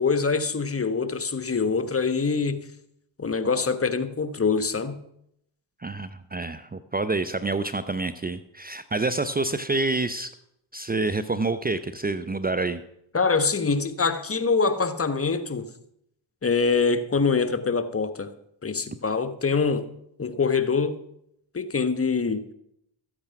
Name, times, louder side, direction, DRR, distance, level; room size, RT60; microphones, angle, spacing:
voice 1, 0.0-2.6 3.2-5.0 13.1-15.7 16.4-18.3 18.6-19.8 20.2-21.0 21.5-22.4, left 4 dB, 25° left, 1.4 m, -24 dB
voice 2, 5.8-10.3 10.7-12.8, right 3 dB, 20° right, 0.8 m, -27 dB
14.0 x 8.8 x 5.9 m
hypercardioid pair, 45°, 49 cm